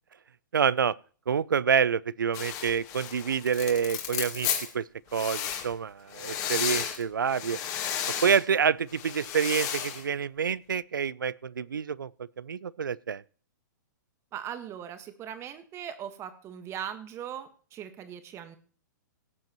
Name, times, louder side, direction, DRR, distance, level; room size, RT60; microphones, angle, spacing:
voice 1, 0.5-0.9 1.3-4.5 4.7-4.8 5.1-7.6 8.2-12.1 12.4-13.2, right 7 dB, 85° right, 0.4 m, -27 dB
sound 1, 2.3-4.7 5.1-5.7 6.1-7.0 7.3-8.4 8.9-10.0, left 9 dB, 35° left, 1.9 m, -33 dB
voice 2, 14.3-18.6, right 9 dB, 25° right, 1.4 m, -39 dB
17.5 x 7.8 x 3.0 m
hypercardioid pair, 120°, 10 cm